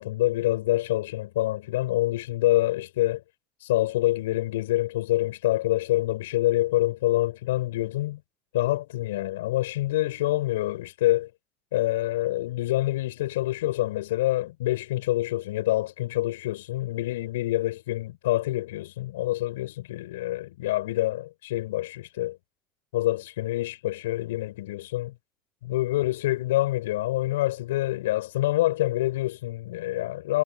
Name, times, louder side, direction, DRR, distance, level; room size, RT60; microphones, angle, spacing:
voice 1, 0.0-3.2 3.6-8.2 8.5-11.3 11.7-22.4 22.9-25.1 25.6-30.4, left 16 dB, 90° left, 6.5 m, -26 dB
supercardioid pair, 100°, 0 cm